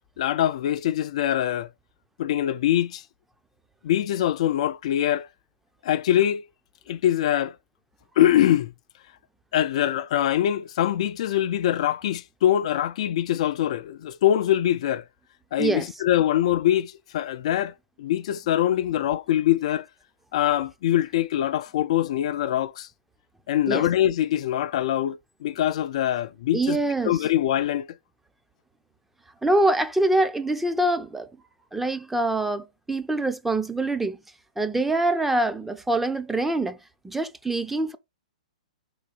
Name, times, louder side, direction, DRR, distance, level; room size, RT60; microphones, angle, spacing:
voice 1, 0.2-1.7 2.2-3.0 3.8-5.3 5.8-6.4 6.9-7.5 8.2-8.7 9.5-15.0 15.5-17.7 18.0-19.9 20.3-22.9 23.5-26.8 27.0-27.9, left 12 dB, 55° left, 0.4 m, -23 dB
voice 2, 15.6-15.9 23.7-23.9 26.5-27.2 29.4-31.3 31.7-34.2 34.6-36.8 37.0-38.0, right 2 dB, 5° right, 0.7 m, -24 dB
5.0 x 3.8 x 4.9 m
hypercardioid pair, 125°, 4 cm